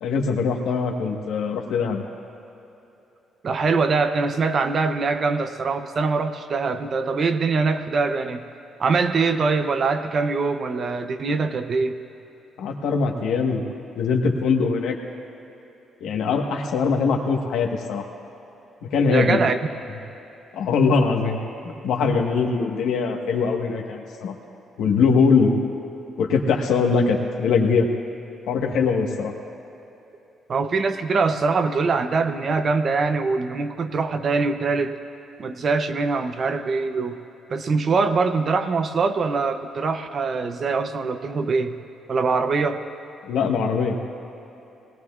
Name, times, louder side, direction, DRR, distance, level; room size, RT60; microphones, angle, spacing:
voice 1, 0.0-2.0 12.6-13.7 13.9-14.9 16.0-18.1 18.9-19.4 20.5-21.4 21.6-24.3 24.8-25.5 26.2-27.9 28.5-29.3 43.3-44.0, left 5 dB, 80° left, 2 dB, 1.3 m, -22 dB
voice 2, 3.4-8.4 8.8-12.0 19.1-19.6 30.5-35.0 35.4-37.2 37.5-41.8 42.1-42.8, right 4 dB, 35° right, 9 dB, 0.6 m, -23 dB
20.0 x 18.0 x 2.4 m, 3.0 s
cardioid pair, 155°, 0 cm